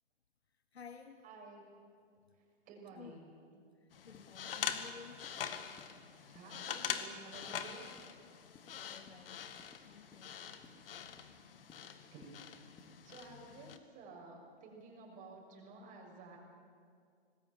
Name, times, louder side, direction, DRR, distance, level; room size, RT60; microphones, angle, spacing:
voice 1, 0.7-1.3 2.9-3.2 3.8-5.4 8.8-10.4, left 6 dB, 85° left, 9 dB, 1.3 m, -54 dB
voice 2, 1.2-1.7 2.7-3.3 6.3-7.9 11.9-12.4 13.0-16.4, right 3 dB, 25° right, 0 dB, 6.2 m, -53 dB
sound 1, 3.9-13.8, left 8 dB, 60° left, 1.9 m, -44 dB
sound 2, 4.1-4.3 4.7-4.9 5.2-5.4 5.8-5.9 6.3-6.5 6.9-7.1 7.4-7.6 8.0-8.2 8.5-9.2 9.6-9.8 10.1-10.3 10.6-10.8 11.2-11.3 11.7-11.9 12.2-12.4 12.8-12.9, left 4 dB, 15° left, 2.2 m, -60 dB
26.0 x 20.0 x 7.4 m, 2.3 s
hypercardioid pair, 125°, 31 cm